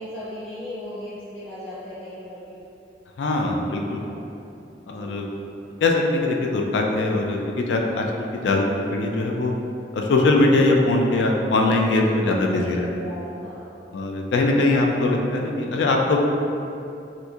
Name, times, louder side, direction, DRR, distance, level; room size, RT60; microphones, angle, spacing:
voice 1, 0.0-2.6 3.6-4.2 4.8-5.1 11.8-13.7, left 1 dB, 5° right, -17 dB, 1.2 m, -37 dB
voice 2, 3.2-4.0 4.9-5.3 5.8-8.0 8.3-9.5 9.9-12.9 13.9-16.2, left 2 dB, 75° left, 1 dB, 0.3 m, -21 dB
4.2 x 2.7 x 2.3 m, 2.7 s
head